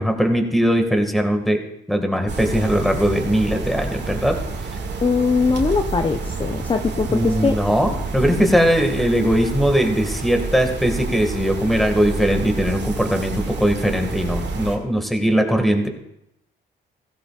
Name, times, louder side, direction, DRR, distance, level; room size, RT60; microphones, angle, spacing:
voice 1, 0.0-1.6 1.9-4.4 7.1-15.9, equal, ahead, 4 dB, 1.9 m, -20 dB
sound 1, 2.3-14.8, right 3 dB, 60° right, 2.1 m, -29 dB
voice 2, 5.0-7.6, left 4 dB, 25° left, 5 dB, 0.7 m, -21 dB
16.5 x 15.0 x 2.5 m, 0.83 s
cardioid pair, 90°, 20 cm